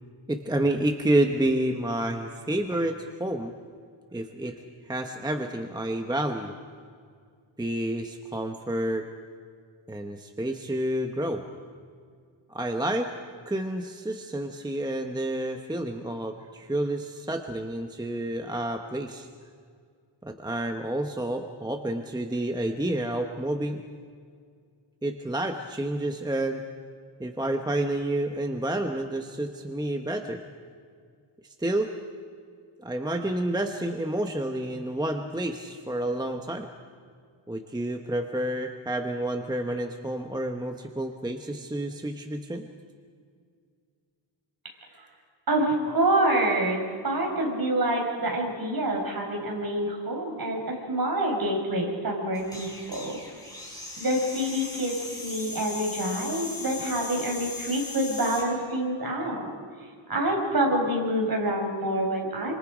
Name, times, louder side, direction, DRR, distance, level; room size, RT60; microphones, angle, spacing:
voice 1, 0.3-3.5 4.1-4.6 4.9-6.5 7.6-9.1 9.9-11.4 12.5-13.1 13.5-19.3 20.2-23.8 25.0-26.6 27.2-30.4 31.6-31.9 32.8-36.7 37.5-42.7, right 1 dB, 10° right, 5 dB, 1.0 m, -29 dB
voice 2, 45.5-53.2 53.5-53.7 54.0-59.5 60.1-62.5, right 1 dB, 45° right, 0 dB, 5.6 m, -27 dB
sound 1, 52.3-58.5, left 2 dB, 5° left, 6.2 m, -38 dB
28.0 x 26.0 x 5.1 m, 2.1 s
wide cardioid pair, 145°, 49 cm